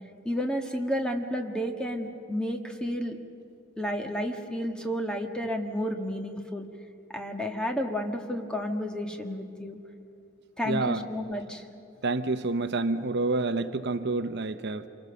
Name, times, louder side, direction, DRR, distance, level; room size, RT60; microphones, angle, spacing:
voice 1, 0.2-3.2 3.8-6.7 7.1-9.8 10.6-11.7, equal, 5° left, 3 dB, 1.5 m, -31 dB
voice 2, 10.6-11.0 12.0-14.9, right 3 dB, 60° right, 10 dB, 0.7 m, -28 dB
27.5 x 25.0 x 6.9 m, 2.8 s
head